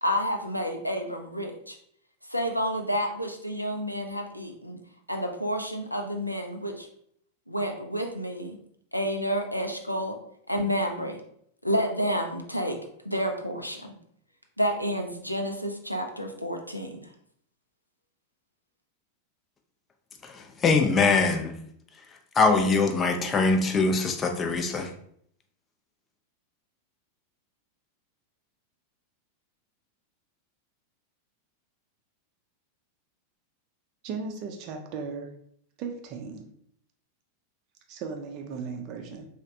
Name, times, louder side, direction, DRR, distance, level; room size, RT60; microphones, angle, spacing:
voice 1, 0.0-1.8 2.3-4.8 5.1-6.9 7.5-8.6 8.9-10.1 10.5-11.2 11.6-12.8 13.0-13.9 14.6-17.0, equal, 90° left, 4 dB, 0.3 m, -29 dB
voice 2, 20.3-21.6 22.4-24.9, left 4 dB, 20° left, 5 dB, 0.4 m, -23 dB
voice 3, 34.0-35.3 35.8-36.5 37.9-39.3, right 5 dB, 40° right, 4 dB, 0.4 m, -36 dB
3.1 x 2.1 x 2.6 m, 0.67 s
figure-of-eight pair, 90°, 0 cm